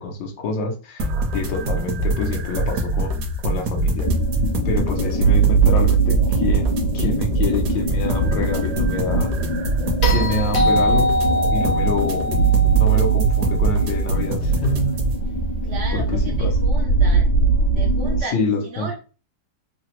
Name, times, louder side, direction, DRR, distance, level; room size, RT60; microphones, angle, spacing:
voice 1, 0.0-3.2 3.4-4.1 4.6-9.4 10.0-11.2 11.5-12.3 12.7-15.0 15.9-16.5 18.3-18.9, left 3 dB, 90° left, 2 dB, 1.4 m, -26 dB
sound 1, 1.0-15.1, right 1 dB, 65° right, 1.0 m, -24 dB
sound 2, 4.0-18.2, right 5 dB, 75° left, 1.4 m, -21 dB
sound 3, 10.0-14.3 16.5-16.6, left 1 dB, 55° left, 0.7 m, -24 dB
voice 2, 15.6-17.3 17.7-18.9, right 3 dB, 85° right, 1 dB, 0.6 m, -34 dB
3.8 x 2.0 x 2.9 m, 0.35 s
omnidirectional pair, 1.9 m